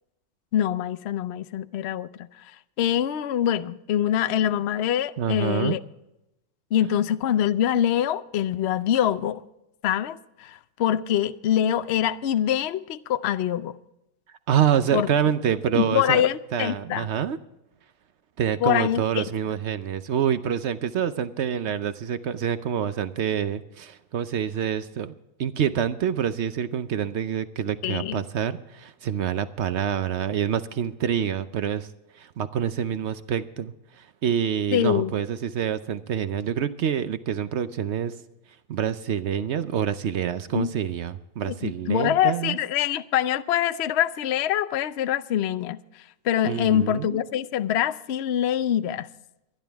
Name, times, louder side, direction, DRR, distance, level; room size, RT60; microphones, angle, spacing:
voice 1, 0.5-2.5 2.8-5.8 6.7-9.4 9.8-13.8 14.9-15.1 15.7-17.1 18.6-19.2 27.8-28.2 34.7-35.1 40.5-40.7 41.5-49.1, left 10 dB, 85° left, 0.5 m, -24 dB
voice 2, 5.2-5.8 14.5-16.2 16.5-17.4 18.4-25.1 25.4-31.9 32.1-38.1 38.7-42.6 46.4-47.2, right 9 dB, 65° right, 0.6 m, -26 dB
23.0 x 10.5 x 3.5 m
omnidirectional pair, 1.9 m